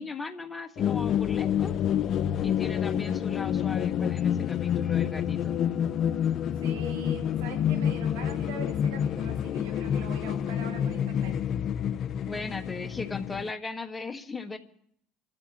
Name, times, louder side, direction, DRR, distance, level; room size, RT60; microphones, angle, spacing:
voice 1, 0.0-1.7 2.4-5.6 12.3-14.6, left 3 dB, 20° left, 7 dB, 1.7 m, -37 dB
sound 1, 0.8-13.5, left 9 dB, 55° left, 0.5 m, -28 dB
voice 2, 6.6-11.4, right 2 dB, 80° right, 2 dB, 3.5 m, -42 dB
26.5 x 13.0 x 3.1 m, 0.67 s
hypercardioid pair, 80°, 0 cm